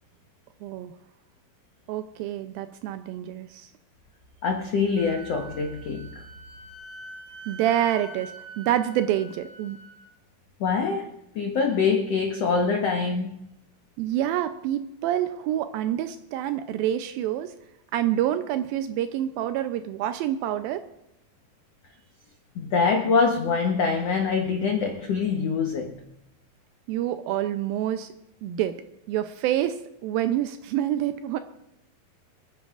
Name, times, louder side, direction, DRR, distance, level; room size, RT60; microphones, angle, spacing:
voice 1, 0.6-0.9 1.9-3.7 7.5-9.8 14.0-17.5 17.9-20.9 26.9-28.1 28.4-28.8 29.1-31.4, right 12 dB, 80° right, 10 dB, 2.2 m, -27 dB
voice 2, 4.4-6.1 10.6-13.4 22.5-26.0, left 5 dB, 85° left, 2 dB, 1.4 m, -24 dB
Wind instrument woodwind instrument, 4.9-10.1, right 3 dB, 35° right, 2.2 m, -45 dB
28.5 x 10.0 x 2.5 m, 0.84 s
omnidirectional pair, 4.5 m